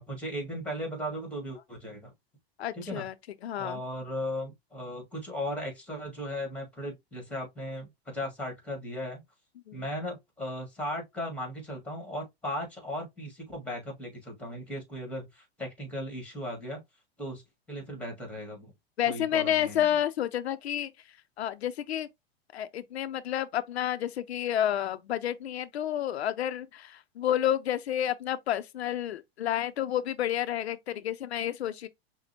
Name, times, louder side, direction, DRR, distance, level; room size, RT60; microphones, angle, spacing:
voice 1, 0.0-2.1 2.7-3.1 3.6-9.2 9.7-16.8 17.2-18.7 19.1-19.9, equal, 5° left, 1.7 m, -37 dB
voice 2, 2.6-3.1 3.4-3.8 9.7-9.8 19.0-20.9 21.4-22.1 22.5-31.9, left 11 dB, 85° left, 0.5 m, -30 dB
5.9 x 2.1 x 2.8 m
hypercardioid pair, 110°, 32 cm